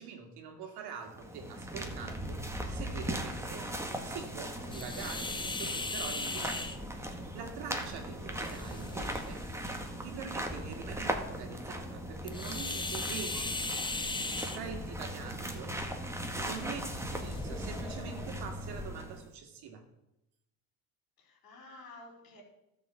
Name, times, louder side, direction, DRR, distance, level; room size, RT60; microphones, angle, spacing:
voice 1, 0.0-9.5 9.7-14.0 14.3-19.9, right 6 dB, 65° right, 2.3 m, -45 dB
sound 1, 1.0-19.3, right 1 dB, 5° right, 1.7 m, -39 dB
voice 2, 3.3-3.7 4.5-4.9 6.2-6.5 8.0-8.2 21.2-22.4, left 2 dB, 55° left, 4.5 m, -53 dB
sound 2, 4.7-18.9, left 3 dB, 10° left, 1.0 m, -40 dB
12.5 x 5.4 x 7.4 m
supercardioid pair, 90°, 42 cm